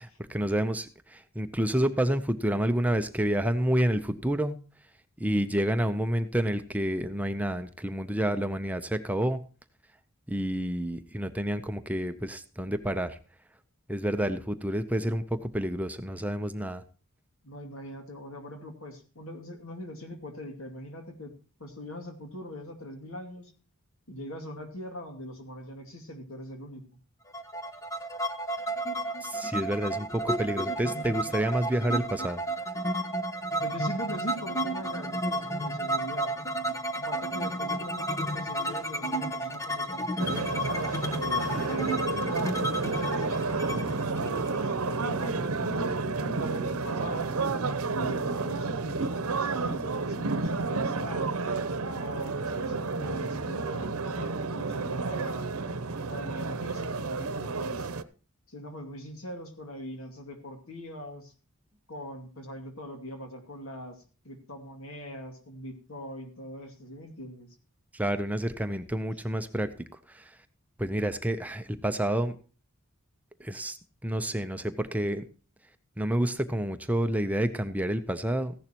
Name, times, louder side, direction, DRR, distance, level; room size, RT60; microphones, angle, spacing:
voice 1, 0.0-4.6 5.2-9.4 10.3-13.2 13.9-16.8 29.2-32.4 67.9-69.7 70.1-70.4 70.8-72.4 73.4-73.8 74.0-75.3 76.0-78.5, right 1 dB, 5° right, 9 dB, 0.6 m, -29 dB
voice 2, 17.4-21.3 21.6-23.5 24.1-26.8 33.6-36.3 36.9-42.0 42.6-47.3 47.9-51.4 52.0-55.5 56.1-57.9 58.5-61.3 61.9-67.6, left 1 dB, 70° left, 5 dB, 2.5 m, -41 dB
sound 1, 27.3-45.0, right 1 dB, 15° left, 1.0 m, -32 dB
sound 2, 40.2-58.0, right 4 dB, 85° right, 0.8 m, -31 dB
15.0 x 11.0 x 3.0 m, 0.37 s
head